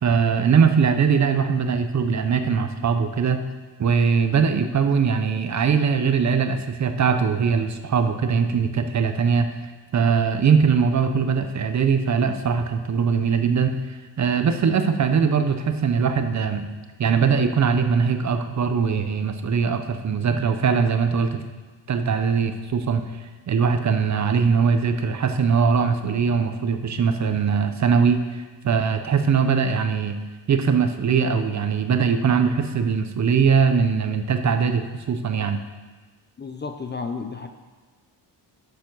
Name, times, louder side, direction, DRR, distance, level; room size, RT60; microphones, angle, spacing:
voice 1, 0.0-3.4 3.8-9.5 9.9-13.7 14.2-16.7 17.0-21.4 21.9-23.0 23.5-30.2 30.5-35.6, right 6 dB, 35° right, 8 dB, 0.7 m, -21 dB
voice 2, 36.4-37.5, left 4 dB, 25° left, 6 dB, 0.5 m, -32 dB
10.0 x 7.0 x 6.1 m, 1.3 s
cardioid pair, 150°, 46 cm